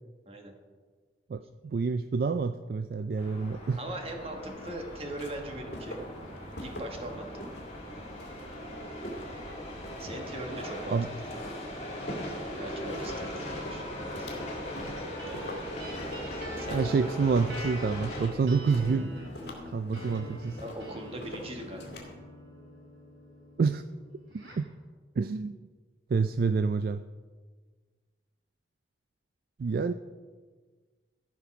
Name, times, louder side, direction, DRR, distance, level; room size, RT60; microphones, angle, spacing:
voice 1, 1.3-3.8 10.9-11.1 16.7-19.1 19.7-20.6 23.6-23.8 24.3-24.7 25.2-25.6 26.1-27.0 29.6-29.9, right 4 dB, 55° right, 11 dB, 0.3 m, -28 dB
sound 1, 3.2-18.3, left 1 dB, 35° left, 2.5 m, -39 dB
voice 2, 3.8-6.0 6.6-7.5 10.0-11.0 11.2-11.4 12.6-14.3 15.2-15.5 16.6-16.8 20.6-22.0, right 1 dB, 30° right, 3 dB, 1.4 m, -40 dB
Walk footsteps, 4.5-22.2, equal, 65° left, 2.3 m, -46 dB
sound 2, 15.2-24.7, equal, 85° right, 3.0 m, -46 dB
14.0 x 5.4 x 5.9 m, 1.5 s
head